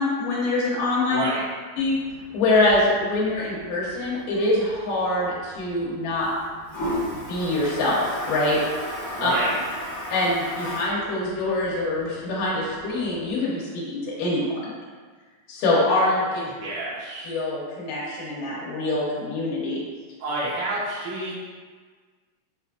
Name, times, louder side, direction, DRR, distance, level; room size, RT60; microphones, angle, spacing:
voice 1, 0.0-1.2 1.8-2.0 2.3-6.3 7.1-8.6 9.2-9.3 10.1-14.5 15.5-16.3 17.2-19.8, left 2 dB, 90° left, -6 dB, 2.5 m, -24 dB
voice 2, 1.1-1.5 9.1-9.6 16.3-17.3 20.2-21.4, right 2 dB, 90° right, -8 dB, 2.7 m, -29 dB
Toilet flush, 1.8-13.3, left 1 dB, 60° left, 0.7 m, -36 dB
7.1 x 2.5 x 2.3 m, 1.5 s
omnidirectional pair, 3.6 m